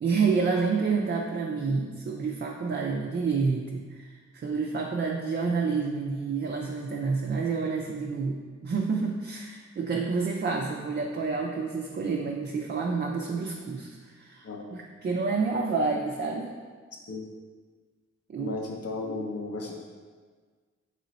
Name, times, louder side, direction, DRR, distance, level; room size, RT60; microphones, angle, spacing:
voice 1, 0.0-16.5 18.3-18.6, right 4 dB, 35° right, 0 dB, 0.4 m, -29 dB
voice 2, 18.4-19.7, left 3 dB, 55° left, 0 dB, 0.7 m, -34 dB
3.1 x 2.9 x 4.0 m, 1.5 s
cardioid pair, 40°, 30 cm